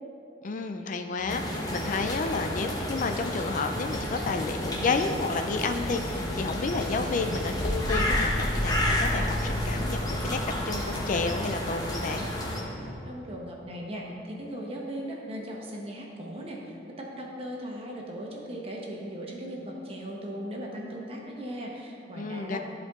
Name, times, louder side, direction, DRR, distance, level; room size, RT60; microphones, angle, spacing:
voice 1, 0.4-10.4 10.7-12.3 22.2-22.6, left 3 dB, 45° left, 6 dB, 0.4 m, -31 dB
sound 1, 1.2-12.9, equal, 5° left, 1.3 m, -35 dB
sound 2, 1.3-12.6, left 1 dB, 20° left, 1.0 m, -32 dB
voice 2, 13.0-22.6, equal, 30° right, -2 dB, 1.2 m, -38 dB
13.5 x 4.6 x 3.7 m, 2.8 s
head